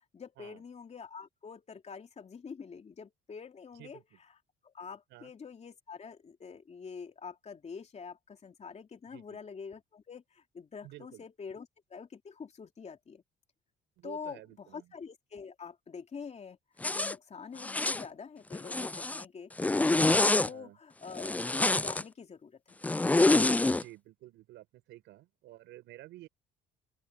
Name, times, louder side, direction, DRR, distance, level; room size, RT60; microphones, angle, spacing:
voice 1, 0.1-4.4 4.6-13.2 14.0-16.6 16.9-22.8, left 6 dB, 35° left, 3.1 m, -46 dB
voice 2, 3.8-4.2 5.1-5.3 9.1-9.4 10.8-11.2 14.0-14.9 20.5-20.8 23.8-26.3, right 16 dB, 80° right, 5.0 m, -51 dB
Zipper (clothing), 16.8-17.1 17.6-18.0 18.5-19.2 19.6-20.5 21.2-22.0 22.8-23.8, left 2 dB, 10° left, 0.3 m, -26 dB
open air
cardioid pair, 90°, 19 cm